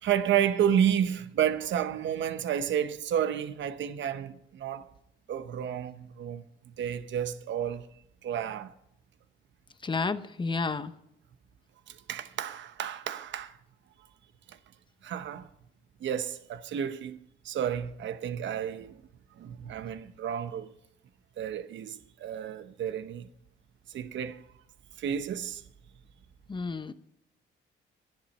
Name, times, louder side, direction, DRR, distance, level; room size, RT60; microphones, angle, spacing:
voice 1, 0.0-4.9 5.3-7.9 8.2-8.7 11.9-13.6 14.5-14.6 15.0-15.5 16.0-17.2 17.4-19.0 19.4-20.7 21.4-23.3 23.9-24.5 25.0-25.6, right 9 dB, 70° right, 1.0 m, -31 dB
voice 2, 9.8-10.9 26.5-26.9, left 4 dB, 25° left, 0.9 m, -31 dB
11.5 x 10.5 x 5.4 m
cardioid pair, 90°, 20 cm